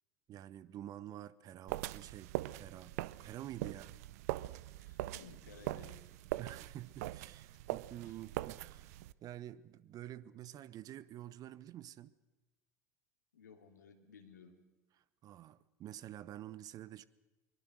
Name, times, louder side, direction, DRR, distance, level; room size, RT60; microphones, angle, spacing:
voice 1, 0.3-2.3 2.6-2.9 3.2-3.9 6.4-8.9 9.2-12.1 15.2-17.0, right 12 dB, 40° right, 18 dB, 0.9 m, -48 dB
sound 1, 1.7-9.1, right 17 dB, 65° right, 0.6 m, -42 dB
voice 2, 4.8-6.0 13.3-14.5, left 6 dB, 80° left, 5 dB, 2.8 m, -57 dB
23.0 x 22.0 x 6.4 m, 1.1 s
hypercardioid pair, 75°, 9 cm